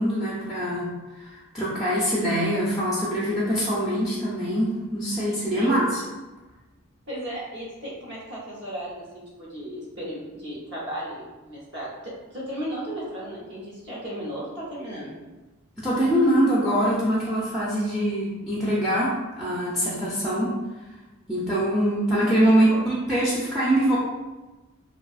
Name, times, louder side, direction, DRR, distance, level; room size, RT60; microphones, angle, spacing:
voice 1, 0.0-6.0 15.8-20.6 21.3-24.0, equal, ahead, -8 dB, 0.4 m, -23 dB
voice 2, 5.5-5.9 7.1-11.9 12.3-15.1 22.7-22.8, right 1 dB, 55° right, -6 dB, 0.9 m, -35 dB
2.6 x 2.4 x 2.3 m, 1.1 s
head